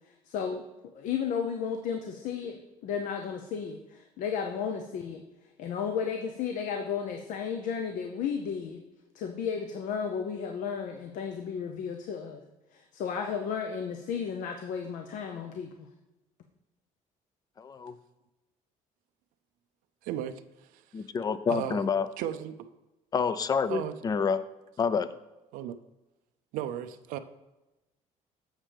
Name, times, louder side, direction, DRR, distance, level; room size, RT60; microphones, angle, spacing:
voice 1, 0.3-0.6 0.9-5.2 5.6-8.8 9.1-12.4 12.7-15.9, left 7 dB, 70° left, 5 dB, 0.6 m, -33 dB
voice 2, 17.6-17.9 20.9-22.1 23.1-24.4 24.8-25.1, left 6 dB, 30° left, 14 dB, 0.4 m, -28 dB
voice 3, 20.0-20.4 20.7-20.8 21.5-21.8 22.2-22.7 23.7-24.3 25.5-25.8 26.5-27.2, right 10 dB, 85° right, 9 dB, 0.4 m, -35 dB
7.3 x 7.3 x 3.3 m, 1.0 s
cardioid pair, 120°, 14 cm